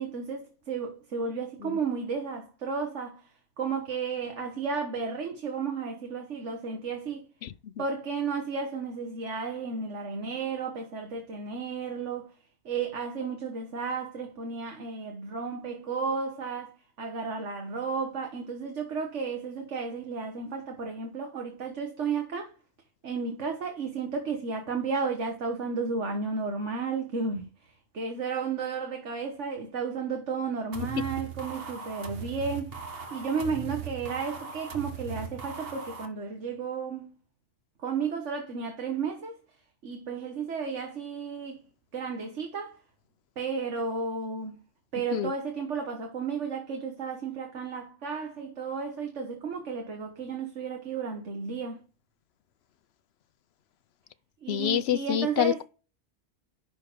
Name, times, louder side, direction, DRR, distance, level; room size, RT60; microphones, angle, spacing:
voice 1, 0.0-3.2 3.6-7.3 7.8-12.3 12.6-22.5 23.0-27.5 27.9-37.1 37.8-39.4 39.8-41.6 41.9-42.7 43.4-44.6 44.9-51.8 54.4-55.6, right 5 dB, 85° right, 1.7 m, -33 dB
sound 1, 30.7-36.1, right 5 dB, 55° right, 1.6 m, -39 dB
voice 2, 54.5-55.6, left 10 dB, 65° left, 0.9 m, -27 dB
11.0 x 4.1 x 5.0 m
omnidirectional pair, 1.2 m